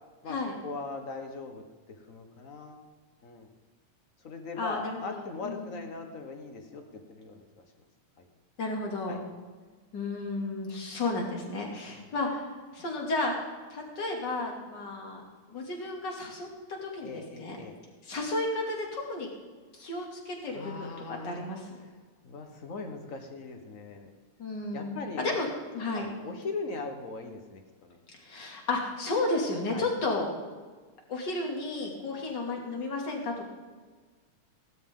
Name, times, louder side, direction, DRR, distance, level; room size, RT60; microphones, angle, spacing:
voice 1, 0.6-2.8 3.2-3.5 4.2-7.6 8.2-8.3 9.1-9.2 11.9-12.0 17.0-17.8 20.5-21.4 21.8-22.0 22.2-24.1 24.7-25.4 25.9-28.0 29.7-29.9, left 4 dB, 65° left, 5 dB, 0.8 m, -40 dB
voice 2, 4.6-5.8 8.6-9.2 9.9-12.5 12.7-13.3 13.7-15.2 15.5-17.6 18.0-19.3 19.8-21.6 24.4-25.5 25.7-26.1 28.2-30.3 31.1-33.5, left 2 dB, 35° left, 0 dB, 3.0 m, -33 dB
18.0 x 12.5 x 3.8 m, 1.4 s
omnidirectional pair, 3.3 m